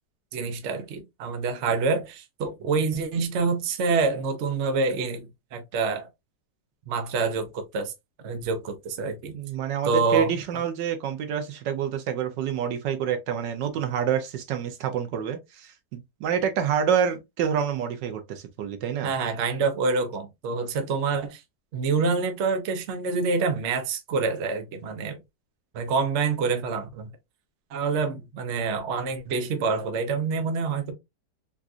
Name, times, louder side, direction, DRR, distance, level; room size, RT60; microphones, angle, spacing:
voice 1, 0.3-6.1 6.9-7.9 8.2-9.4 9.8-10.3 19.0-21.4 21.7-25.2 25.7-27.1 27.7-30.9, right 4 dB, 55° right, 0.8 m, -27 dB
voice 2, 9.3-19.1, right 8 dB, 85° right, 1.3 m, -27 dB
3.8 x 2.4 x 2.4 m
omnidirectional pair, 1.9 m